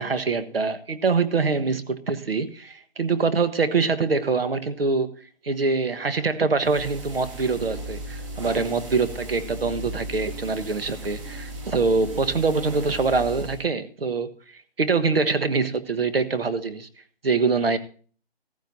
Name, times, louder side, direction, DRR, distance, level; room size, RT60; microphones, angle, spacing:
voice 1, 0.0-16.9 17.2-17.8, right 4 dB, 65° right, 1.4 m, -24 dB
sound 1, 6.6-13.6, right 1 dB, 30° right, 4.0 m, -36 dB
14.5 x 14.5 x 2.7 m
hypercardioid pair, 175°, 32 cm